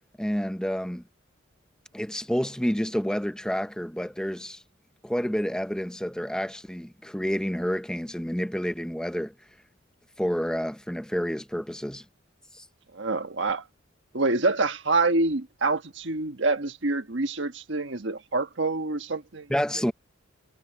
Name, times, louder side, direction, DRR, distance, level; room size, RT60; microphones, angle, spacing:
voice 1, 0.2-1.0 1.9-4.6 5.0-9.3 10.2-12.0 12.5-12.6 19.5-19.9, equal, 5° left, 0.7 m, -29 dB
voice 2, 12.9-13.6 14.1-19.5, right 3 dB, 65° right, 1.4 m, -26 dB
head